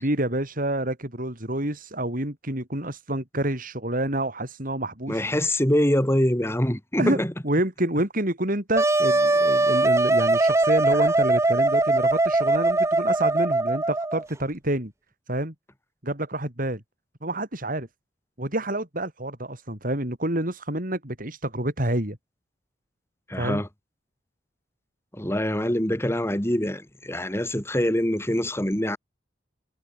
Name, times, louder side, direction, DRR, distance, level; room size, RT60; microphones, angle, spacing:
voice 1, 0.0-5.2 7.0-14.9 15.3-15.5 16.0-16.8 17.2-17.9 18.4-22.2 23.4-23.6, right 1 dB, 50° right, 5.8 m, -28 dB
voice 2, 5.1-7.3 23.3-23.7 25.1-29.0, left 1 dB, 15° left, 3.1 m, -24 dB
Wind instrument woodwind instrument, 8.8-14.3, right 2 dB, 15° right, 0.7 m, -21 dB
head